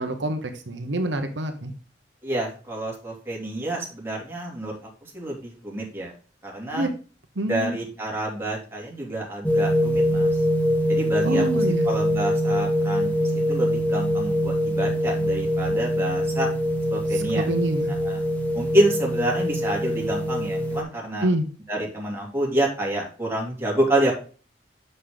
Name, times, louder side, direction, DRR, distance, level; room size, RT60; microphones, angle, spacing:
voice 1, 0.0-1.7 6.7-6.9 7.4-7.8 11.2-11.9 17.1-17.9 21.2-21.4, right 1 dB, 80° right, 6 dB, 1.1 m, -26 dB
voice 2, 2.2-4.8 5.1-6.1 6.4-6.9 7.4-10.3 10.9-11.4 11.8-16.5 16.9-17.5 18.0-18.2 18.5-21.3 21.7-24.1, right 1 dB, 15° right, -3 dB, 2.8 m, -27 dB
sound 1, 9.4-20.8, equal, 10° left, 1.3 m, -23 dB
6.7 x 6.6 x 3.7 m, 0.37 s
head